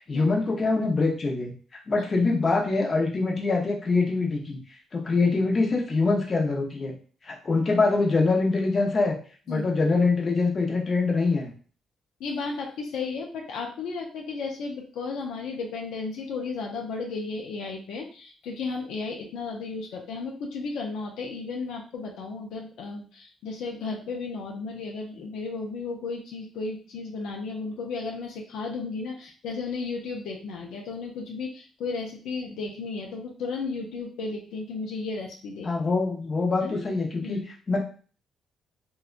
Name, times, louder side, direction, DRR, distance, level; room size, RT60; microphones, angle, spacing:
voice 1, 0.1-1.5 1.9-4.6 4.9-6.9 7.2-9.1 9.5-11.5 35.6-37.4 37.7-37.8, left 3 dB, 35° left, 0 dB, 0.7 m, -24 dB
voice 2, 12.2-35.7 36.6-36.8 37.2-37.4, left 4 dB, 85° left, 1 dB, 0.4 m, -34 dB
2.7 x 2.2 x 2.4 m, 0.40 s
cardioid pair, 90°, 0 cm